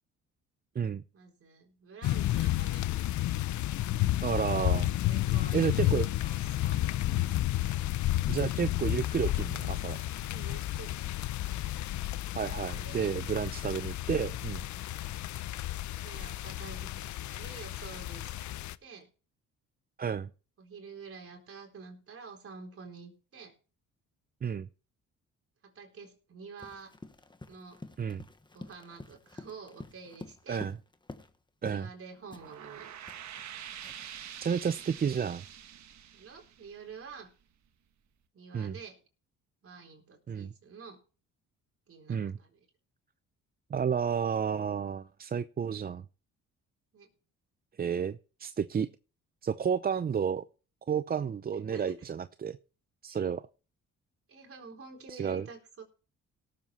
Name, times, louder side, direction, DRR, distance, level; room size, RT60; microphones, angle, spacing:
voice 1, 1.1-3.0 5.0-7.2 10.2-11.0 12.7-13.1 15.8-19.1 20.6-23.5 25.6-26.9 27.5-27.8 28.5-30.6 31.6-33.0 36.1-37.3 38.3-39.0 39.6-41.0 41.9-42.6 46.9-47.1 51.7-52.0 53.1-53.2 54.3-55.8, right 5 dB, 45° right, 4.2 m, -48 dB
sound 1, 2.0-18.8, left 14 dB, 75° left, 0.7 m, -31 dB
voice 2, 4.2-4.9 5.5-6.1 8.3-10.0 12.3-14.6 20.0-20.3 24.4-24.7 28.0-28.2 30.5-30.8 31.6-31.9 34.4-35.4 38.5-38.7 40.3-40.5 42.1-42.4 43.7-46.0 47.8-48.9 49.4-50.5 50.9-52.5 53.0-53.4 55.1-55.5, right 7 dB, 30° right, 0.6 m, -31 dB
Run, 26.6-31.4 31.6-31.9 32.3-34.2, left 2 dB, 15° left, 1.3 m, -49 dB
sound 2, 32.2-37.4, right 9 dB, 65° right, 1.4 m, -46 dB
18.0 x 7.6 x 4.3 m
cardioid pair, 90°, 30 cm